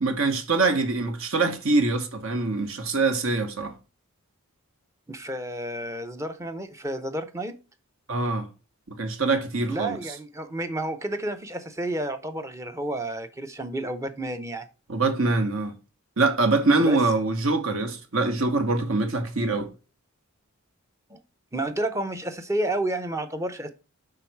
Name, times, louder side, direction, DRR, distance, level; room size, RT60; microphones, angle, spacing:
voice 1, 0.0-3.7 8.1-8.5 8.9-10.0 14.9-15.7 16.2-19.7, right 3 dB, 65° right, 1.2 m, -24 dB
voice 2, 5.1-7.6 9.7-14.7 16.8-17.0 21.1-21.2 21.5-23.7, right 1 dB, 15° right, 0.6 m, -31 dB
5.8 x 3.9 x 4.5 m
head